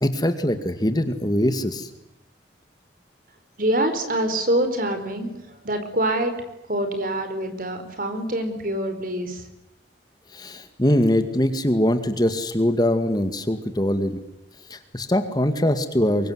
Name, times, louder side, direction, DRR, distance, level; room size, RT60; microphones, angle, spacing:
voice 1, 0.0-1.9 10.3-14.2 14.7-16.3, left 1 dB, 20° left, 8 dB, 2.1 m, -22 dB
voice 2, 3.6-6.4 6.7-9.5, right 1 dB, 50° right, 8 dB, 4.7 m, -25 dB
24.5 x 23.0 x 9.5 m, 0.83 s
head